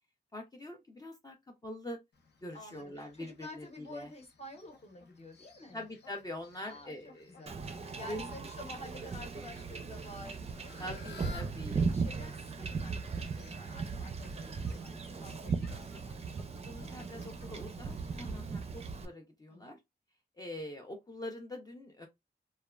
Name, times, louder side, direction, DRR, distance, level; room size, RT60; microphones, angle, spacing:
voice 1, 0.3-1.4 1.6-2.0 2.4-4.1 5.7-7.6 8.1-8.3 10.8-11.8 15.4-15.5 15.9-16.0 16.5-19.8 20.4-22.1, left 1 dB, 20° left, 0.4 m, -44 dB
Fowl, 2.1-18.5, left 4 dB, 85° left, 0.7 m, -58 dB
voice 2, 2.5-5.8 6.6-11.3 11.7-16.3 19.5-19.8, left 1 dB, 40° left, 0.8 m, -50 dB
Wind / Ocean / Boat Water vehicle, 7.5-19.1, right 4 dB, 40° right, 0.4 m, -38 dB
3.2 x 2.2 x 2.3 m
wide cardioid pair, 180°, 17 cm